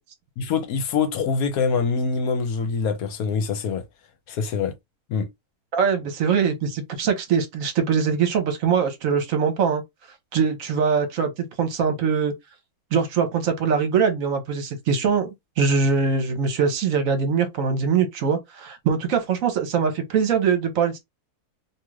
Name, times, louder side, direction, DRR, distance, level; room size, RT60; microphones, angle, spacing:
voice 1, 0.4-3.8 4.3-4.7 5.1-5.3, left 5 dB, 75° left, 1.1 m, -24 dB
voice 2, 5.7-9.8 10.3-11.3 11.6-12.3 12.9-21.0, right 6 dB, 65° right, 1.1 m, -22 dB
2.6 x 2.4 x 3.1 m
omnidirectional pair, 1.6 m